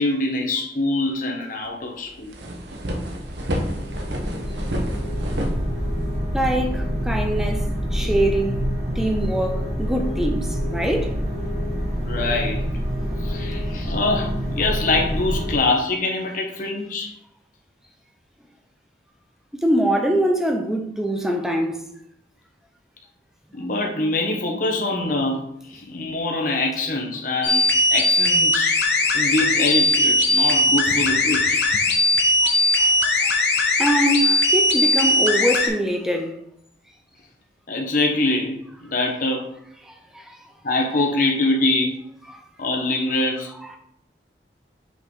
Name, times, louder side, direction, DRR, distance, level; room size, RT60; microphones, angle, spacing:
voice 1, 0.0-2.3 12.0-12.7 13.2-17.1 23.5-27.6 27.9-28.8 29.1-31.6 37.7-39.6 40.6-42.0 42.6-43.6, left 2 dB, 50° left, 1.1 m, -24 dB
sound 1, 1.7-1.8 2.1-6.3, equal, 75° right, 1.1 m, -29 dB
sound 2, 2.8-15.6, equal, 40° right, 1.5 m, -26 dB
voice 2, 6.3-8.7 8.9-11.1 19.5-21.9 31.5-31.8 32.4-33.3 33.8-36.3 39.8-40.5 42.3-42.4, right 1 dB, 5° right, 0.8 m, -24 dB
sound 3, 27.4-35.7, left 1 dB, 70° left, 1.1 m, -19 dB
6.3 x 5.2 x 3.8 m
head